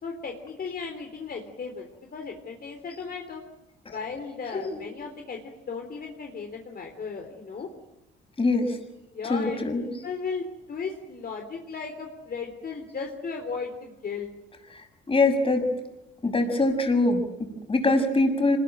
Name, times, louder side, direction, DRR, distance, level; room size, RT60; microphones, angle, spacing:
voice 1, 0.0-3.4 3.9-5.4 5.7-7.7 9.1-14.3, left 5 dB, 50° left, 3 dB, 3.7 m, -36 dB
voice 2, 8.4-8.8 9.3-9.8 15.1-15.7 16.2-18.6, left 2 dB, 25° left, 6 dB, 6.7 m, -23 dB
26.0 x 21.0 x 9.0 m, 0.92 s
cardioid pair, 90°, 20 cm